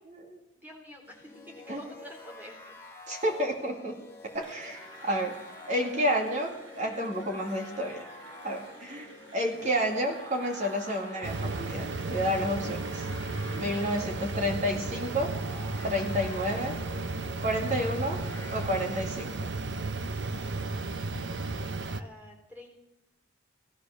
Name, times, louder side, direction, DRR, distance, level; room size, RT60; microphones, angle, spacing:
voice 1, 0.6-1.3 1.8-2.7 21.9-22.8, equal, 10° right, 0 dB, 3.4 m, -48 dB
sound 1, 1.0-19.0, left 2 dB, 10° left, 2.1 m, -48 dB
voice 2, 3.1-5.4 5.7-8.1 8.4-9.1 9.3-13.1 13.5-15.4 15.8-16.8 17.4-18.2 18.5-19.4, equal, 35° right, 1 dB, 2.2 m, -30 dB
Cheering / Applause, 4.3-14.3, right 1 dB, 75° right, 5.1 m, -52 dB
sound 2, 11.2-22.0, right 3 dB, 60° right, 0.8 m, -34 dB
17.0 x 13.0 x 6.5 m, 0.89 s
head